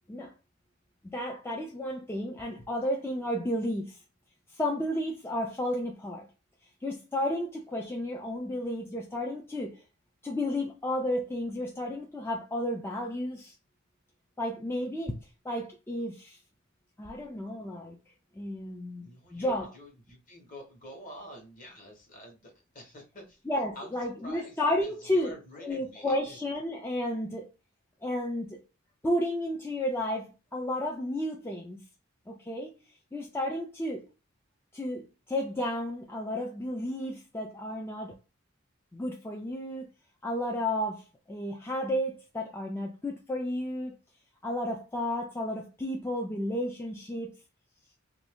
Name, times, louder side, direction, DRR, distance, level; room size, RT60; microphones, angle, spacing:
voice 1, 1.0-4.0 4.5-6.3 6.8-9.8 10.2-13.5 14.4-15.2 15.4-16.4 17.0-18.0 18.3-19.7 23.5-25.3 25.6-27.5 28.0-28.6 29.0-31.8 32.3-32.7 33.1-34.0 34.7-38.2 38.9-39.9 40.2-43.9 44.4-47.3, left 1 dB, 10° left, 0.3 m, -32 dB
voice 2, 19.0-23.4 23.7-23.9 24.2-26.4, equal, 40° left, 1.1 m, -48 dB
2.7 x 2.6 x 3.4 m
head